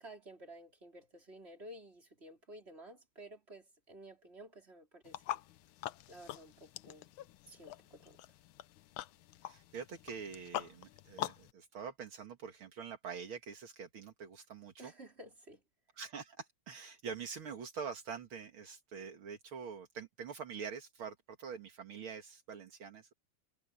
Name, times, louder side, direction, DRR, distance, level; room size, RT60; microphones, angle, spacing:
voice 1, 0.0-5.4 6.1-7.1 7.5-8.2 14.8-15.6, right 1 dB, 30° right, 5.0 m, -53 dB
sound 1, 5.0-11.5, left 13 dB, 75° left, 1.5 m, -44 dB
voice 2, 9.4-14.9 16.0-23.1, right 6 dB, 75° right, 2.6 m, -45 dB
omnidirectional pair, 2.3 m